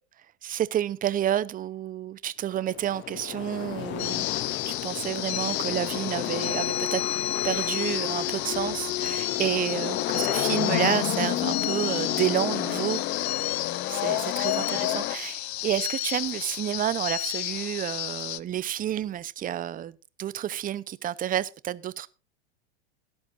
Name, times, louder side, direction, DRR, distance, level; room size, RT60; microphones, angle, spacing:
voice 1, 0.4-4.3 4.7-7.0 7.4-13.4 13.9-22.1, right 11 dB, 25° right, 0.8 m, -30 dB
sound 1, 2.5-15.2, left 15 dB, 35° left, 0.7 m, -31 dB
sound 2, 4.0-18.4, left 15 dB, 75° left, 0.7 m, -32 dB
18.5 x 10.5 x 2.5 m
hypercardioid pair, 110°, 32 cm